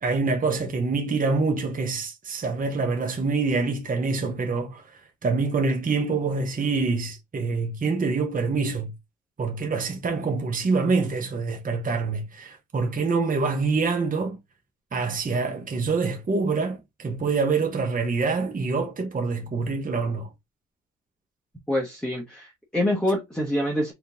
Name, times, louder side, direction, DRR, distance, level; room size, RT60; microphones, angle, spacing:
voice 1, 0.0-8.9 9.4-14.4 14.9-20.3, right 4 dB, 25° right, 1.0 m, -26 dB
voice 2, 21.7-23.9, left 1 dB, 5° left, 1.1 m, -26 dB
3.6 x 2.9 x 3.5 m
cardioid pair, 90°, 30 cm